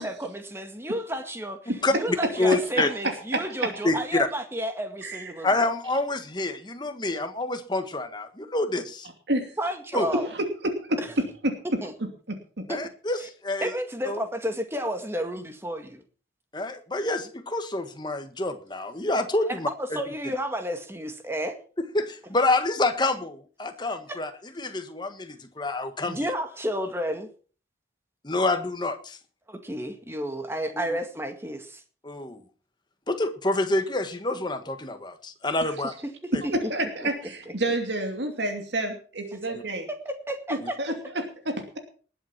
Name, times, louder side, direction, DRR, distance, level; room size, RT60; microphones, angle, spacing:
voice 1, 0.0-1.6 1.9-5.5 9.6-10.3 11.6-11.9 12.7-12.8 13.2-13.3 13.6-16.0 19.5-21.5 24.1-24.2 26.1-27.3 29.5-31.8 36.0-36.5 37.0-37.1 37.5-37.6 39.4-39.6 39.9-40.8, equal, 15° right, 6 dB, 1.9 m, -31 dB
voice 2, 1.8-2.9 3.8-4.3 5.4-9.1 9.9-10.1 12.7-13.7 14.1-14.2 16.5-20.0 21.8-24.3 24.6-26.3 28.2-29.2 30.7-31.0 32.0-32.4 33.1-35.9 36.3-36.4 39.5-39.6, left 2 dB, 25° left, 8 dB, 1.5 m, -27 dB
voice 3, 5.0-5.5 9.3-9.5 10.1-10.4 10.9-11.0 11.4-11.5 36.3-39.9 40.8-41.8, right 1 dB, 70° right, 4 dB, 2.7 m, -29 dB
19.5 x 8.0 x 5.9 m, 0.40 s
head